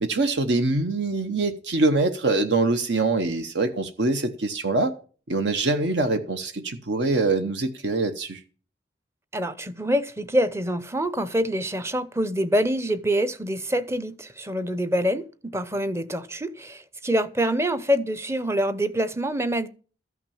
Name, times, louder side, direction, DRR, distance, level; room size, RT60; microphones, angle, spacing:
voice 1, 0.0-4.9 5.3-8.4, right 3 dB, 70° right, 0.9 m, -24 dB
voice 2, 9.3-19.7, equal, 15° right, 0.6 m, -25 dB
13.5 x 6.0 x 7.0 m
head